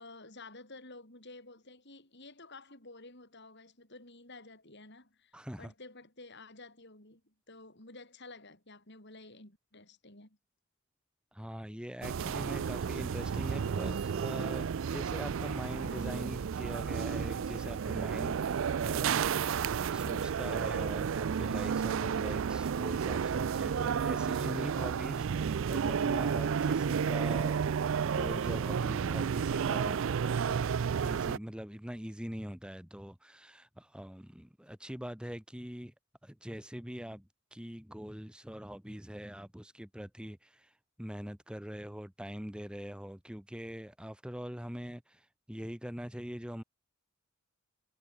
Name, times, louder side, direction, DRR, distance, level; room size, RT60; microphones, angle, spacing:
voice 1, 0.0-10.4, left 2 dB, 50° left, 5.9 m, -52 dB
voice 2, 5.3-5.7 11.3-19.5 19.9-30.7 31.0-35.9 36.2-46.6, equal, 5° right, 1.1 m, -43 dB
sound 1, 12.0-31.4, right 7 dB, 60° right, 0.4 m, -32 dB
sound 2, 12.8-18.1, left 5 dB, 85° left, 1.9 m, -60 dB
head